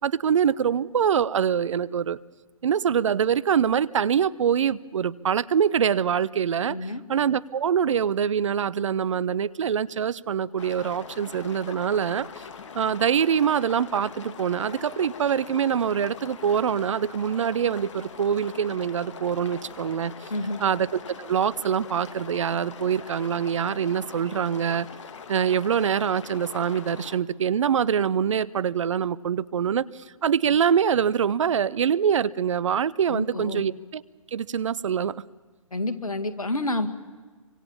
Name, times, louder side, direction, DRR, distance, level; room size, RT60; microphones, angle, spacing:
voice 1, 0.0-2.2 2.6-12.4 12.7-20.1 20.6-24.9 25.3-34.0 34.3-35.2, right 8 dB, 60° right, 21 dB, 0.8 m, -24 dB
voice 2, 6.7-7.0 20.3-20.6 33.1-33.6 35.7-36.9, left 2 dB, 90° left, 10 dB, 2.1 m, -29 dB
sound 1, 10.6-27.2, left 6 dB, 55° left, 2.0 m, -42 dB
27.0 x 25.0 x 7.2 m, 1.4 s
figure-of-eight pair, 135°, 18 cm